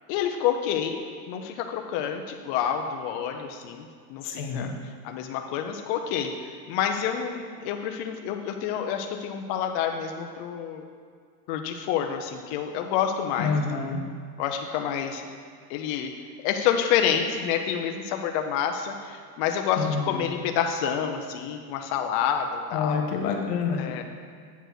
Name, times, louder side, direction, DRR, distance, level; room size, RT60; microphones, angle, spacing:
voice 1, 0.1-1.0 1.3-4.7 5.0-10.9 11.5-13.5 13.8-13.9 14.4-15.3 15.7-16.1 16.4-23.0 23.8-24.0, left 8 dB, 35° left, 4 dB, 0.4 m, -28 dB
voice 2, 4.2-4.7 13.4-14.0 19.8-20.3 22.7-24.0, left 5 dB, 75° left, 3 dB, 1.4 m, -28 dB
8.1 x 4.4 x 5.9 m, 2.1 s
supercardioid pair, 140°, 48 cm